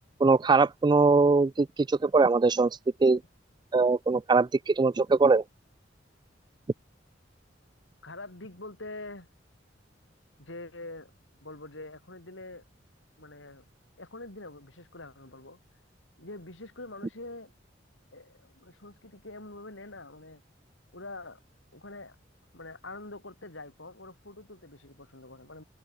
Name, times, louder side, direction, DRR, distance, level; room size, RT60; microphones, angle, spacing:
voice 1, 0.2-3.2 3.7-5.4, right 4 dB, 20° right, 0.3 m, -22 dB
voice 2, 8.0-9.3 10.4-11.1 11.4-12.6 13.2-13.6 14.0-15.6 16.2-17.5 18.1-20.4 20.9-21.4 21.7-22.2 22.5-25.6, left 2 dB, 75° left, 6.0 m, -44 dB
head